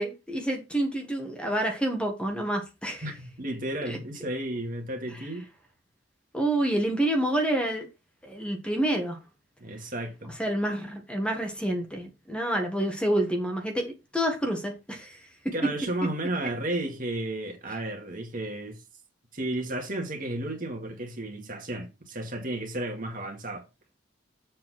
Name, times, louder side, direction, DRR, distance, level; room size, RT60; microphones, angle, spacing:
voice 1, 0.0-3.0 3.8-4.0 6.3-7.8 8.2-9.2 10.4-15.2 15.4-15.5, right 1 dB, 5° left, 1.5 m, -28 dB
voice 2, 3.0-5.5 9.6-10.4 15.5-18.8 19.3-23.7, right 1 dB, 45° right, 1.9 m, -33 dB
7.5 x 4.0 x 6.2 m
head